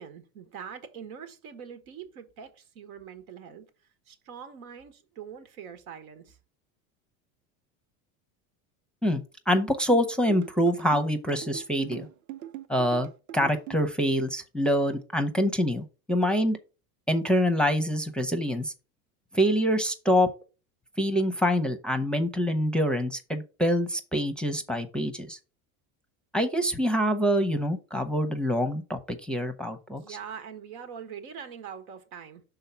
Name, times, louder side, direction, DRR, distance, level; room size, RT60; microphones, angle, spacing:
voice 1, 0.0-3.7 4.1-6.4 29.9-32.4, right 7 dB, 85° right, 1.3 m, -43 dB
voice 2, 9.0-12.1 12.7-13.1 13.3-16.6 17.1-18.7 19.3-20.3 21.0-25.4 26.3-30.2, equal, ahead, 0.6 m, -25 dB
sound 1, 9.9-13.9, right 12 dB, 45° right, 0.8 m, -41 dB
5.6 x 3.8 x 5.6 m
supercardioid pair, 95°, 42 cm